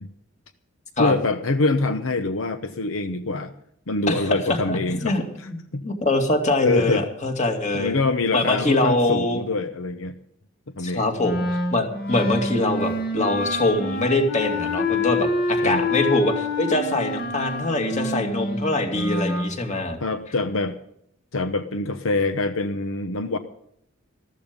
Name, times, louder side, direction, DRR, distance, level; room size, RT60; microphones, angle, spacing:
voice 1, 1.0-3.5 3.9-5.8 6.6-7.0 7.7-10.2 10.8-11.1 15.6-15.9 20.0-20.8 21.3-23.4, left 3 dB, 75° left, 9 dB, 0.9 m, -25 dB
voice 2, 4.1-4.4 4.7-8.0 8.3-9.4 10.8-20.0, left 2 dB, 35° left, 4 dB, 2.4 m, -24 dB
Wind instrument woodwind instrument, 11.2-19.5, left 2 dB, 50° left, 1.7 m, -27 dB
14.5 x 13.5 x 5.3 m, 0.71 s
head